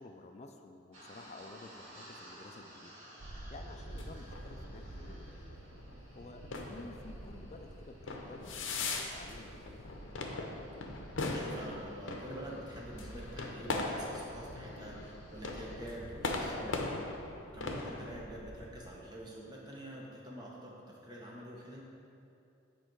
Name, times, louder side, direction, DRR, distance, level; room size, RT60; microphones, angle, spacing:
voice 1, 0.0-2.9 3.5-5.4 6.1-10.2, left 2 dB, 35° left, 5 dB, 0.3 m, -52 dB
sound 1, 0.9-15.9, right 1 dB, 80° right, 1.7 m, -58 dB
sound 2, 3.2-18.9, right 1 dB, 40° right, 0.5 m, -51 dB
sound 3, 3.7-18.1, left 3 dB, 75° left, 0.7 m, -40 dB
voice 2, 11.3-17.0 17.5-21.8, equal, 20° right, -3 dB, 1.0 m, -46 dB
7.7 x 4.5 x 4.6 m, 2.6 s
head